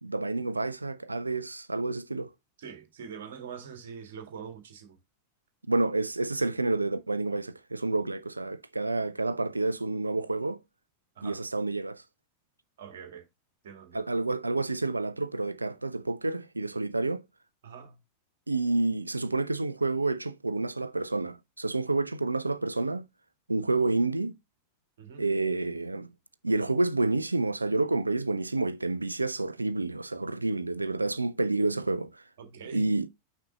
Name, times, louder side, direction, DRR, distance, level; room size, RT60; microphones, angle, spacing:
voice 1, 0.0-2.3 5.7-10.6 11.2-12.0 13.9-17.2 18.5-23.1 23.5-24.4 25.2-26.1 26.4-32.2 32.7-33.1, right 2 dB, 80° right, 0.5 m, -29 dB
voice 2, 2.6-5.0 11.1-11.4 12.8-13.3 13.6-14.1 17.6-18.0 25.0-25.2 32.4-32.9, right 7 dB, 60° right, 1.8 m, -44 dB
6.0 x 4.3 x 4.9 m
figure-of-eight pair, 90°, 0 cm